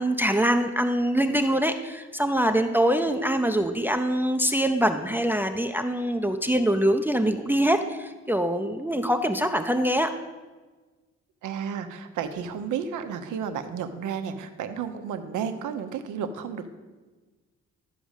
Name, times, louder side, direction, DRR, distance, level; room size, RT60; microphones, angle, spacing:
voice 1, 0.0-10.1, right 1 dB, 5° right, 6 dB, 0.6 m, -24 dB
voice 2, 11.4-16.7, right 7 dB, 80° right, 8 dB, 1.0 m, -32 dB
12.0 x 5.0 x 7.3 m, 1.3 s
cardioid pair, 90°, 30 cm